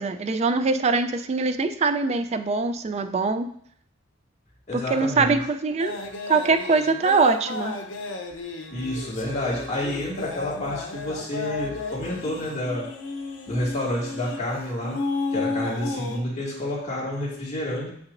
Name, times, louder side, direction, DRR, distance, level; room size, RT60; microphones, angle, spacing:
voice 1, 0.0-3.5 4.7-6.0 6.3-7.8, right 4 dB, 35° right, 9 dB, 0.3 m, -23 dB
voice 2, 4.7-5.4 8.7-12.9 13.5-15.0 15.3-17.9, left 1 dB, 35° left, -5 dB, 2.0 m, -29 dB
Carnatic varnam by Vignesh in Kalyani raaga, 5.8-16.2, left 3 dB, 75° left, 0.7 m, -33 dB
6.6 x 5.9 x 2.5 m, 0.66 s
head